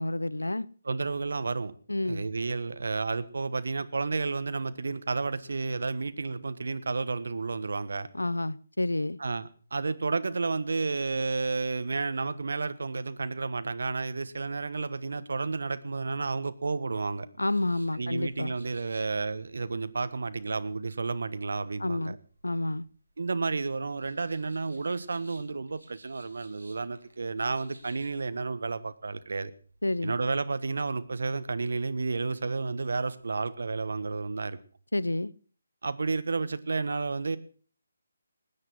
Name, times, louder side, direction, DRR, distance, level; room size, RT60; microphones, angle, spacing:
voice 1, 0.0-0.7 1.9-2.2 8.1-9.2 17.4-18.5 21.8-22.2 22.4-22.9 29.8-30.2 34.9-35.3, left 1 dB, 90° left, 0.6 m, -29 dB
voice 2, 0.8-1.7 2.0-8.1 9.2-17.3 17.9-22.2 23.2-29.5 30.0-34.6 35.8-37.4, right 3 dB, 65° right, 1.3 m, -31 dB
sound 1, 17.5-33.2, right 1 dB, 90° right, 5.1 m, -61 dB
18.5 x 9.7 x 6.2 m
figure-of-eight pair, 150°, 0 cm